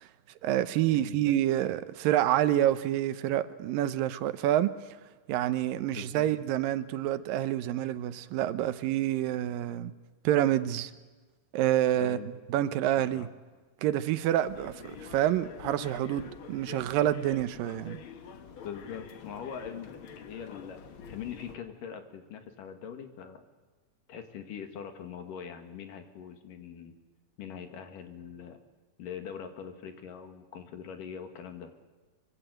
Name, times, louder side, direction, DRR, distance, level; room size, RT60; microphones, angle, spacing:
voice 1, 0.4-4.8 5.3-9.9 10.2-10.9 11.5-12.2 12.5-13.3 13.8-18.0, right 12 dB, 85° right, 2.6 m, -27 dB
voice 2, 5.9-6.3 11.9-12.4 13.1-13.3 18.6-20.8 21.1-23.4 24.1-26.9 27.4-28.6 29.0-31.7, left 7 dB, 75° left, 3.5 m, -42 dB
sound 1, 14.4-21.6, left 7 dB, 60° left, 1.4 m, -46 dB
24.5 x 24.0 x 7.9 m
omnidirectional pair, 3.9 m